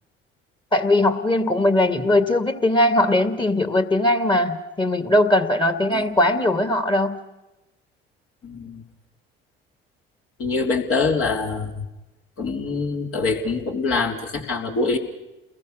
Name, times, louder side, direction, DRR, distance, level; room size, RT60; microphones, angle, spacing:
voice 1, 0.7-7.2, left 1 dB, 15° left, 9 dB, 2.2 m, -20 dB
voice 2, 8.4-8.8 10.4-11.9 12.4-15.0, left 4 dB, 50° left, 1 dB, 3.5 m, -24 dB
29.5 x 21.0 x 6.5 m, 1.0 s
figure-of-eight pair, 60°, 29 cm